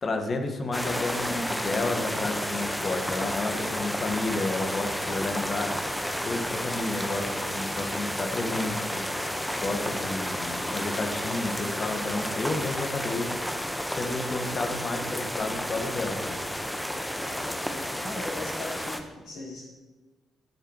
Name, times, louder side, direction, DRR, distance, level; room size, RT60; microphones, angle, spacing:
voice 1, 0.0-5.7 6.2-9.0 9.6-13.3 13.9-16.4, left 2 dB, 40° left, 4 dB, 1.7 m, -31 dB
sound 1, 0.7-19.0, equal, 5° left, 1.4 m, -31 dB
voice 2, 17.1-19.7, left 2 dB, 55° left, -9 dB, 4.5 m, -40 dB
16.5 x 11.0 x 3.2 m, 1.2 s
figure-of-eight pair, 40°, 0 cm